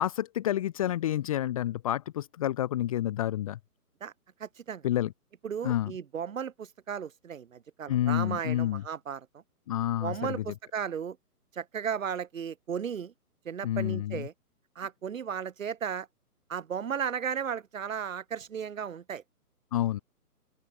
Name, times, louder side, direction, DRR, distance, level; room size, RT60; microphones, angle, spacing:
voice 1, 0.0-3.6 4.8-5.1 5.6-5.9 7.9-8.8 9.7-10.4 13.6-14.3 19.7-20.0, left 12 dB, 20° left, 1.2 m, -29 dB
voice 2, 4.4-4.9 5.4-9.4 10.0-11.2 11.5-13.1 13.4-14.3 14.7-16.1 16.5-19.2, right 7 dB, 55° right, 4.9 m, -35 dB
open air
hypercardioid pair, 160°, 46 cm